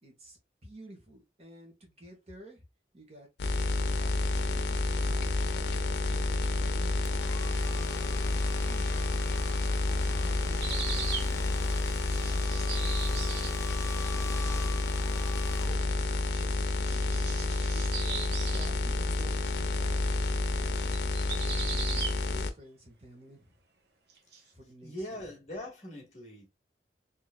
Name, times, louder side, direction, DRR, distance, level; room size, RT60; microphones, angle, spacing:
voice 1, 0.0-2.6 2.9-3.3 3.6-7.2 7.8-9.1 9.9-11.7 12.0-13.8 15.6-20.0 20.5-23.6 24.5-25.2, right 1 dB, 35° right, 1.8 m, -52 dB
sound 1, 3.4-22.5, left 2 dB, 80° left, 0.6 m, -29 dB
Domestic sounds home sounds, 7.0-16.2, left 3 dB, 15° left, 0.3 m, -45 dB
sound 2, 10.6-11.3 11.7-13.6 16.5-18.7 20.9-22.2 24.1-24.4, right 6 dB, 70° right, 1.1 m, -38 dB
voice 2, 24.8-26.5, left 1 dB, 40° left, 2.1 m, -42 dB
4.4 x 3.5 x 2.3 m
head